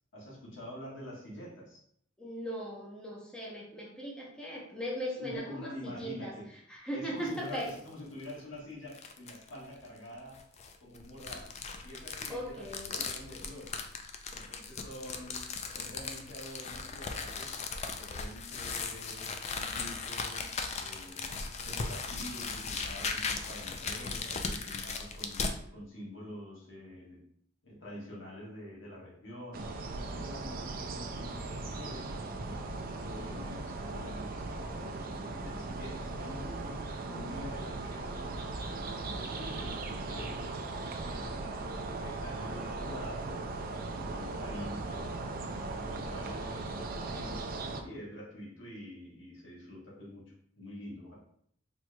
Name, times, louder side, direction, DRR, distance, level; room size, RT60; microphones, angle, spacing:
voice 1, 0.1-1.8 5.2-6.5 6.9-10.4 10.8-11.5 11.8-13.9 14.3-17.6 18.0-20.5 20.7-27.2 27.6-29.7 30.1-32.1 32.4-40.4 40.8-43.3 43.7-51.1, left 1 dB, 80° left, -4 dB, 1.3 m, -46 dB
voice 2, 2.2-6.3 6.7-7.7 12.3-13.0, equal, 5° left, -5 dB, 0.7 m, -38 dB
sound 1, 7.2-7.8 8.2-8.3 8.9-9.5 10.3-25.6, left 4 dB, 35° left, 0.3 m, -38 dB
sound 2, 29.5-47.8, right 3 dB, 50° right, 0.4 m, -38 dB
4.3 x 2.9 x 2.2 m, 0.67 s
head